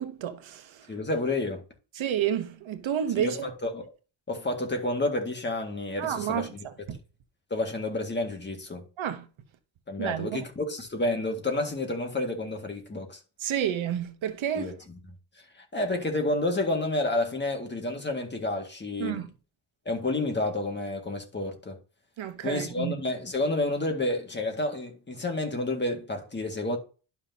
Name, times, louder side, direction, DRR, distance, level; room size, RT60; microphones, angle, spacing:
voice 1, 0.0-0.9 2.0-3.4 6.0-7.0 9.0-9.2 10.0-10.4 13.4-14.7 19.0-19.3 22.2-22.9, right 9 dB, 75° right, 1.0 m, -30 dB
voice 2, 0.9-1.6 3.2-3.9 4.3-6.5 7.5-8.9 9.9-13.2 14.5-15.0 15.6-19.3 19.9-21.8 22.4-26.8, left 2 dB, 25° left, 1.8 m, -30 dB
11.5 x 5.9 x 2.8 m
wide cardioid pair, 160°, 47 cm